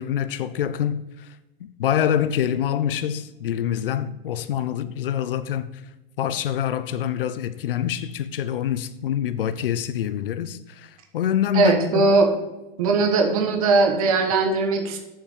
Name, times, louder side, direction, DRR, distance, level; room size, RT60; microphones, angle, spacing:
voice 1, 0.0-1.3 1.6-5.7 6.2-12.1, left 10 dB, 70° left, 0.7 m, -26 dB
voice 2, 11.5-12.3 12.8-15.0, right 3 dB, 40° right, 1.3 m, -19 dB
7.4 x 5.9 x 6.6 m
supercardioid pair, 180°, 29 cm